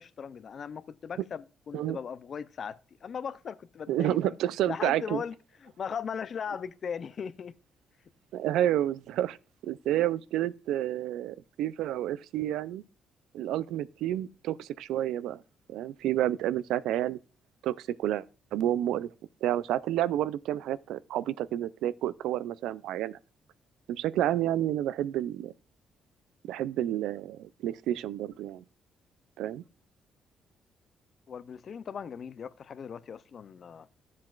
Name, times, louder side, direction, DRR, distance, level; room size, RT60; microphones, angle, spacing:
voice 1, 0.0-4.4 4.6-5.4 5.6-7.5 31.3-33.9, left 7 dB, 50° left, 0.4 m, -38 dB
voice 2, 3.9-5.2 8.3-9.4 9.6-12.8 13.3-15.4 15.7-17.2 17.6-18.2 18.5-19.1 19.4-23.2 23.9-25.5 26.4-28.6 29.4-29.6, right 12 dB, 85° right, 0.3 m, -30 dB
12.5 x 7.4 x 2.4 m
cardioid pair, 90°, 0 cm